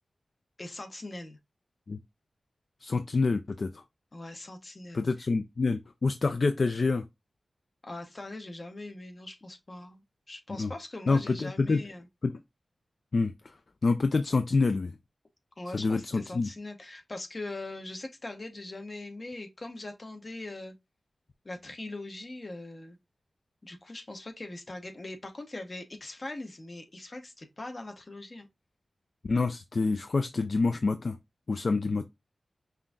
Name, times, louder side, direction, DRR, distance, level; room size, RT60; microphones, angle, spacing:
voice 1, 0.6-1.4 4.1-5.1 7.8-12.1 15.6-20.7 21.4-23.0 23.6-28.5, left 2 dB, 35° left, 0.8 m, -41 dB
voice 2, 2.8-3.8 4.9-7.0 10.6-10.7 11.1-11.8 12.2-12.3 13.1-13.5 13.8-14.9 15.7-16.5 29.2-31.2 31.5-32.1, left 3 dB, 55° left, 0.3 m, -27 dB
5.5 x 2.5 x 2.3 m
wide cardioid pair, 105°, 0 cm